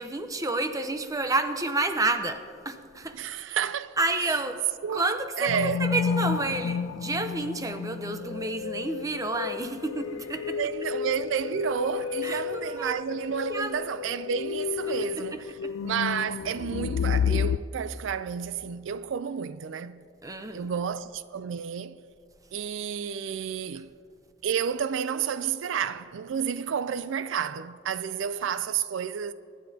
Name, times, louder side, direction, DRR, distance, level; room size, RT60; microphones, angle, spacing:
voice 1, 0.0-3.2 3.5-3.6 4.0-10.6 12.2-13.9 14.9-15.7 20.2-20.7 23.7-23.8, right 2 dB, 20° right, 0.7 m, -30 dB
voice 2, 3.1-4.0 4.8-5.1 5.4-5.8 10.5-15.5 15.8-20.0 20.5-22.0 22.5-23.9 24.4-29.3, right 7 dB, 70° right, 0.4 m, -31 dB
sound 1, 5.5-17.6, left 7 dB, 80° left, 0.3 m, -31 dB
23.5 x 10.5 x 2.8 m
head